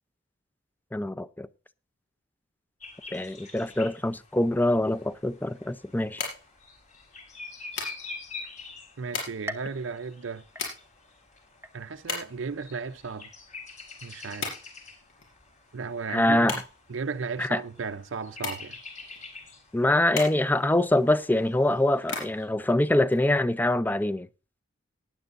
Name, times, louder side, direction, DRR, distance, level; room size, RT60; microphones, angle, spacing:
voice 1, 0.9-1.5 3.1-6.2 16.1-16.6 17.4-17.6 19.7-24.3, left 1 dB, 10° left, 0.5 m, -24 dB
sound 1, 2.8-22.5, left 3 dB, 40° left, 3.7 m, -47 dB
sound 2, 4.9-23.8, left 4 dB, 80° left, 5.6 m, -40 dB
voice 2, 9.0-10.4 11.7-13.3 14.0-14.5 15.7-16.6 16.9-18.8, right 5 dB, 80° right, 0.6 m, -35 dB
sound 3, 9.5-11.2 11.6-12.2 12.7-12.8 13.8-13.9, equal, 15° right, 0.9 m, -43 dB
19.0 x 10.5 x 2.5 m
head